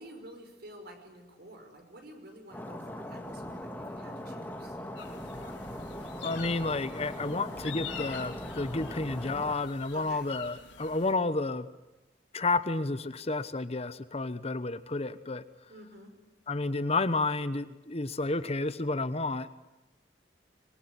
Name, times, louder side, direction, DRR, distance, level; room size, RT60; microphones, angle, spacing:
voice 1, 0.0-4.8 7.2-7.5 9.9-10.3 15.7-16.2, right 1 dB, 60° right, 5 dB, 5.5 m, -50 dB
Stream, 2.5-9.5, left 1 dB, 10° left, 2.2 m, -40 dB
sound 1, 5.0-11.1, left 6 dB, 90° left, 3.9 m, -45 dB
voice 2, 6.2-11.7 12.3-15.4 16.5-19.6, left 3 dB, 35° left, 13 dB, 1.0 m, -31 dB
25.5 x 22.5 x 9.8 m, 1.0 s
head